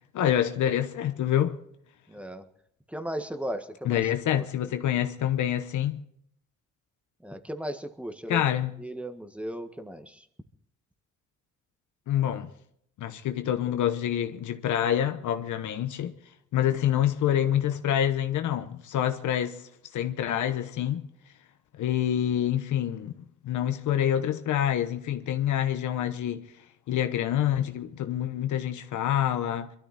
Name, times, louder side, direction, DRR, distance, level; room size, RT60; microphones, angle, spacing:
voice 1, 0.1-1.6 3.8-6.0 8.3-8.7 12.1-12.5 13.0-16.1 16.5-19.6 19.9-21.1 21.8-26.5 26.9-29.7, left 10 dB, 75° left, 1.2 m, -27 dB
voice 2, 2.1-2.4 2.9-4.1 4.4-4.5 7.2-8.4 8.8-10.3, right 1 dB, 5° right, 1.6 m, -36 dB
23.0 x 13.0 x 4.3 m
cardioid pair, 90°, 30 cm